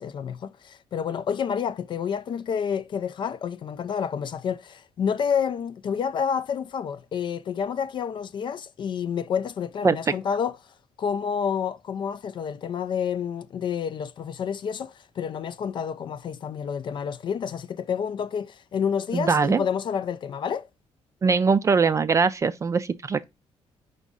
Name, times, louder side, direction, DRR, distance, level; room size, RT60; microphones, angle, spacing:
voice 1, 0.0-20.7, left 7 dB, 45° left, 0.3 m, -29 dB
voice 2, 9.8-10.1 19.1-19.6 21.2-23.2, right 5 dB, 30° right, 0.3 m, -22 dB
5.0 x 3.6 x 5.2 m
cardioid pair, 140°, 11 cm